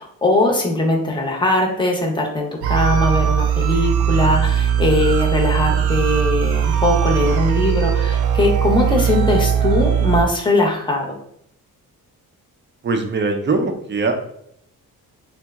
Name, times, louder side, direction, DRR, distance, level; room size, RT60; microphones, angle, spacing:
voice 1, 0.0-11.2, left 2 dB, 15° left, 1 dB, 0.7 m, -20 dB
sound 1, 2.6-10.2, right 8 dB, 85° right, 0.5 m, -19 dB
voice 2, 12.8-14.1, right 3 dB, 30° right, 5 dB, 0.6 m, -21 dB
2.8 x 2.1 x 3.4 m, 0.70 s
cardioid pair, 90°, 36 cm